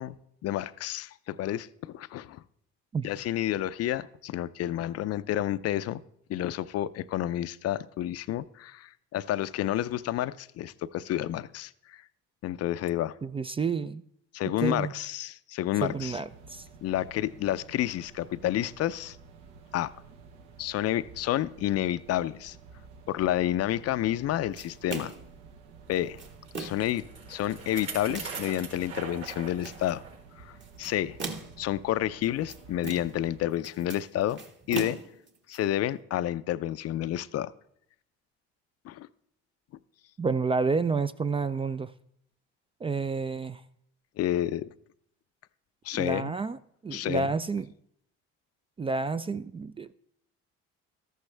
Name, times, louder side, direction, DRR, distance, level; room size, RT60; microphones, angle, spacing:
voice 1, 0.0-2.4 3.0-6.0 6.3-12.0 12.4-13.1 14.3-16.2 16.8-19.2 19.7-19.9 20.6-22.6 23.1-25.1 25.9-26.2 26.6-27.0 27.3-30.0 30.4-31.2 31.6-34.4 34.7-35.0 35.5-37.5 38.8-39.1 44.2-44.7 45.8-46.3 46.9-47.3, left 13 dB, 55° left, 15 dB, 0.5 m, -30 dB
voice 2, 13.2-14.0 14.6-14.9 15.8-16.7 40.2-41.9 42.8-43.6 45.9-47.7 48.8-49.9, right 4 dB, 20° right, 14 dB, 0.3 m, -30 dB
sound 1, 15.8-33.4, right 4 dB, 75° right, 1.0 m, -52 dB
sound 2, 24.6-25.3 25.9-26.9 27.5-28.5 29.0-29.9 30.6-31.7 32.2-33.3 33.5-35.6, right 4 dB, 40° right, 1.6 m, -39 dB
Bicycle, 26.2-30.2 30.6-30.7 31.5-31.6, right 5 dB, 55° right, 4.6 m, -42 dB
13.5 x 12.0 x 3.3 m, 0.71 s
supercardioid pair, 90°, 29 cm